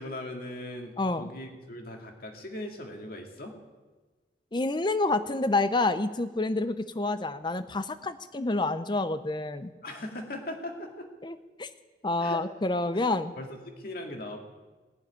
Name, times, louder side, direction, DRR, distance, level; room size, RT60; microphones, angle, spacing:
voice 1, 0.0-3.5 9.8-11.1 12.2-12.4 12.9-14.4, left 1 dB, 55° left, 2 dB, 2.1 m, -39 dB
voice 2, 1.0-1.3 4.5-9.7 11.2-11.7 12.0-13.3, left 2 dB, 25° left, 12 dB, 0.6 m, -28 dB
18.0 x 7.3 x 9.9 m, 1.3 s
head